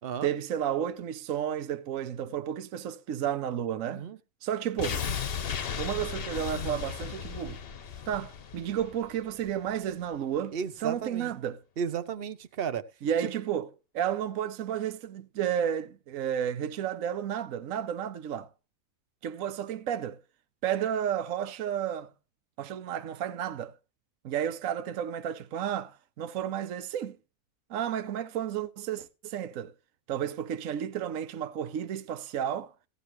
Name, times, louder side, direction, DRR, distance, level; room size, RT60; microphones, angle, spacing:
voice 1, 0.2-4.1 4.4-5.1 5.8-7.6 8.1-10.5 10.8-11.6 13.0-13.7 13.9-18.5 19.2-20.2 20.6-22.1 22.6-23.8 24.2-27.2 27.7-29.7 30.1-32.7, right 9 dB, 70° right, 1.2 m, -32 dB
voice 2, 3.9-4.2 10.5-11.3 11.8-12.8, right 7 dB, 45° right, 1.0 m, -33 dB
sound 1, 4.8-9.7 10.0-10.1, left 7 dB, 50° left, 0.9 m, -35 dB
16.5 x 10.0 x 3.1 m
omnidirectional pair, 1.5 m